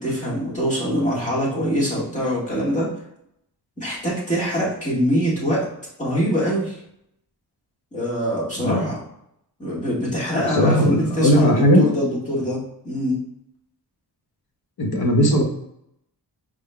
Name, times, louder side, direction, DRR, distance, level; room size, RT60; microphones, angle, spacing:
voice 1, 0.0-2.9 3.8-5.6 6.0-6.8 7.9-9.0 9.6-13.2, equal, 20° left, -6 dB, 1.6 m, -23 dB
voice 2, 10.3-11.8 14.8-15.4, equal, 65° left, 2 dB, 0.9 m, -18 dB
4.9 x 3.6 x 2.3 m, 0.76 s
wide cardioid pair, 165°, 40 cm